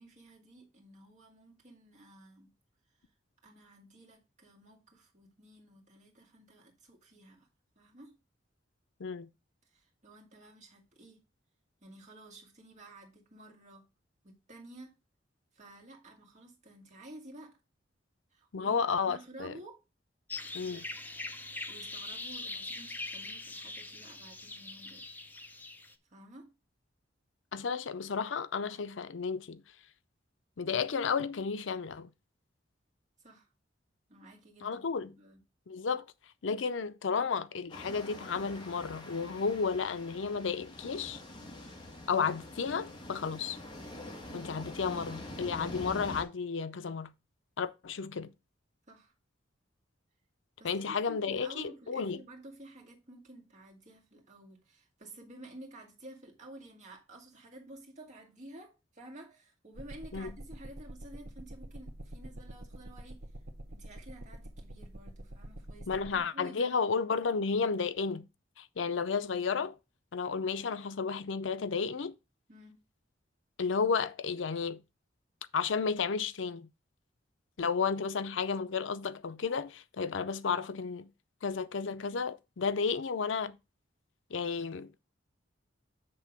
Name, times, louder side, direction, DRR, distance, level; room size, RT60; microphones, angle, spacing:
voice 1, 0.0-2.5 3.4-7.5 7.8-8.2 9.7-11.2 11.8-13.9 14.2-15.0 15.5-17.6 18.3-19.8 20.5-20.9 21.7-25.1 26.1-26.5 33.2-33.5 34.1-35.4 44.3-44.7 48.9-49.1 50.6-63.2 63.7-66.8 72.5-72.8, right 1 dB, 40° right, 2.1 m, -52 dB
voice 2, 18.5-19.5 20.5-20.8 27.5-29.6 30.6-32.1 34.6-35.1 35.7-36.1 36.4-41.2 42.1-43.6 44.3-47.1 47.6-48.3 50.6-52.2 60.1-60.3 65.9-68.2 68.6-69.8 70.1-72.1 73.6-74.8 75.5-76.7 77.6-81.1 81.4-83.6 84.3-84.9, left 5 dB, 80° left, 0.5 m, -32 dB
sound 1, 20.3-25.9, left 2 dB, 10° left, 0.6 m, -42 dB
sound 2, 37.7-46.2, left 1 dB, 25° left, 1.8 m, -45 dB
sound 3, 59.7-66.2, right 1 dB, 55° right, 0.9 m, -46 dB
7.8 x 3.6 x 6.0 m
head